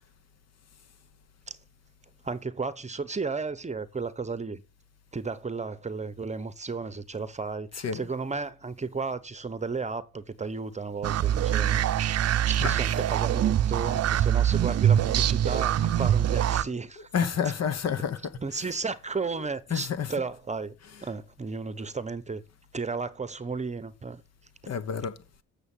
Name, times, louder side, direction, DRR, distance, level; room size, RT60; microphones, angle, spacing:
voice 1, 2.2-4.6 5.1-11.8 12.5-17.1 18.4-20.8 21.0-22.4 22.7-24.2, right 4 dB, 25° right, 0.9 m, -33 dB
voice 2, 7.7-8.1 12.6-12.8 17.0-18.8 19.3-20.2 20.8-21.1 24.7-25.2, left 7 dB, 55° left, 1.3 m, -31 dB
sound 1, 11.0-16.6, right 10 dB, 55° right, 0.6 m, -24 dB
8.0 x 6.9 x 7.4 m
cardioid pair, 90°, 30 cm